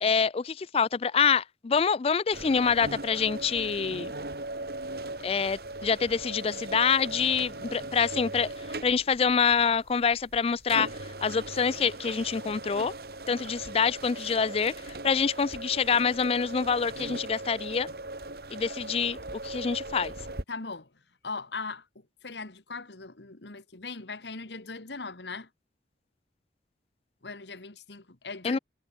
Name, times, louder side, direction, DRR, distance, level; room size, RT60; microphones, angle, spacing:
voice 1, 0.0-4.1 5.2-8.5 8.8-10.9 11.2-12.9 13.3-17.9 18.5-19.2 19.4-20.1 28.4-28.6, left 6 dB, 35° left, 0.4 m, -26 dB
sound 1, 2.3-20.4, right 2 dB, 60° right, 2.7 m, -39 dB
voice 2, 20.5-20.9 21.2-25.5 27.2-28.6, left 4 dB, 75° left, 1.8 m, -39 dB
head